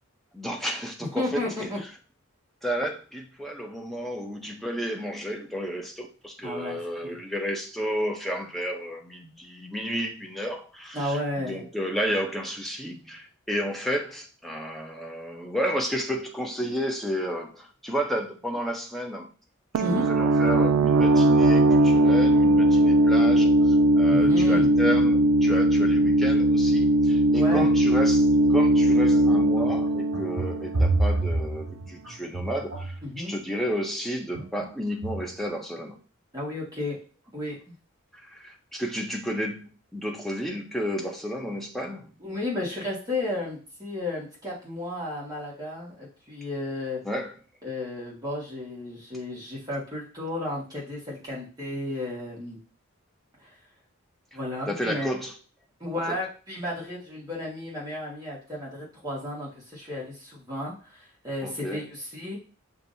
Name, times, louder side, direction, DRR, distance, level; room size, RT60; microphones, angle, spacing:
voice 1, 0.3-1.7 2.6-19.3 19.8-36.0 38.1-42.1 47.0-47.3 54.7-55.4 56.1-56.2 61.4-61.9, equal, ahead, 1 dB, 0.6 m, -32 dB
voice 2, 1.2-1.8 6.4-7.2 10.9-11.6 19.8-20.1 24.1-24.7 27.3-27.7 33.0-33.4 36.3-37.0 37.3-37.7 42.2-47.0 47.6-52.6 53.4-53.5 54.3-55.1 55.8-62.4, left 1 dB, 15° right, -6 dB, 1.5 m, -33 dB
sound 1, 19.7-31.3, right 1 dB, 80° right, 0.3 m, -20 dB
sound 2, 29.6-33.0 34.3-34.7 35.0-35.4, right 2 dB, 60° right, 1.8 m, -28 dB
6.8 x 2.6 x 2.6 m, 0.37 s
head